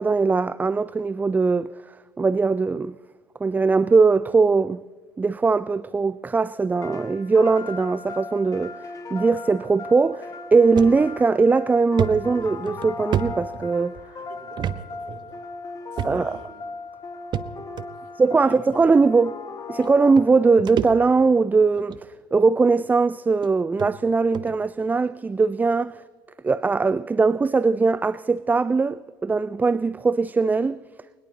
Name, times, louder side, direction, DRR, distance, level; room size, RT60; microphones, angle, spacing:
voice 1, 0.0-1.7 2.2-2.9 3.4-4.8 5.2-8.7 9.1-14.0 16.0-16.4 18.2-19.4 19.7-22.0 22.3-26.0 26.4-30.8, right 4 dB, 15° right, 0.3 m, -20 dB
sound 1, 6.8-20.7, left 3 dB, 30° left, 1.6 m, -37 dB
sound 2, 10.8-11.0 11.4-11.5 12.0-14.0 14.6-14.8 15.1-15.2 16.0-16.4 17.3-17.9 18.8-18.9 19.8-19.9 20.2-21.4 21.8-22.1 22.8-22.9 23.4-23.5 23.8-23.9 24.3-24.5, right 9 dB, 40° right, 0.8 m, -29 dB
voice 2, 14.2-15.4 15.9-16.6 17.9-18.1 18.3-18.6, right 4 dB, 60° right, 3.3 m, -47 dB
21.0 x 20.5 x 2.9 m
hypercardioid pair, 65°, 11 cm